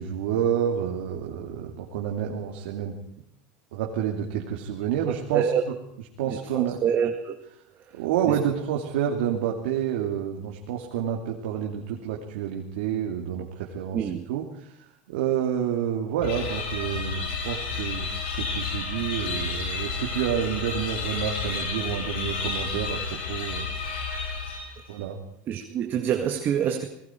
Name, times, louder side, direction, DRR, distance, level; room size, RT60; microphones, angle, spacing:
voice 1, 0.0-2.9 3.7-5.4 6.2-6.8 7.9-14.0 14.3-14.4 15.1-23.7 24.9-25.2, right 9 dB, 90° right, 2.9 m, -29 dB
voice 2, 5.0-5.6 6.3-7.4 7.9-8.4 13.9-14.2 25.5-26.9, right 8 dB, 40° right, 2.0 m, -27 dB
sound 1, 16.2-24.9, left 4 dB, 90° left, 6.3 m, -31 dB
29.0 x 20.0 x 4.6 m
supercardioid pair, 125°, 5 cm